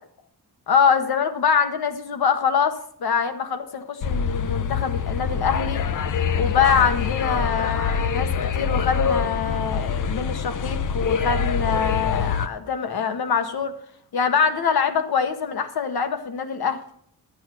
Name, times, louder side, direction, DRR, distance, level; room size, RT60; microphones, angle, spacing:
voice 1, 0.7-5.8 6.3-13.7 14.1-16.8, left 6 dB, 75° left, 8 dB, 1.4 m, -24 dB
sound 1, 4.0-12.5, left 6 dB, 55° left, 0.7 m, -25 dB
12.5 x 8.5 x 6.1 m, 0.64 s
wide cardioid pair, 160°, 37 cm